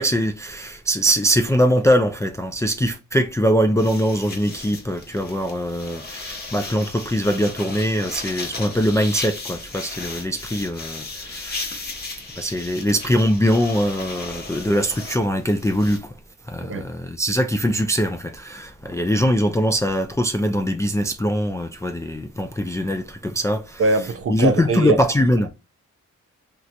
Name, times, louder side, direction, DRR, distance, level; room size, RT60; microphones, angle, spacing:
voice 1, 0.0-11.8 12.4-16.1 16.5-23.8 24.3-25.5, equal, 10° left, 0.3 m, -22 dB
sound 1, 3.8-16.0, left 3 dB, 30° left, 0.9 m, -35 dB
voice 2, 23.8-25.0, right 3 dB, 45° right, 0.6 m, -22 dB
3.2 x 2.7 x 2.4 m
cardioid pair, 95°, 31 cm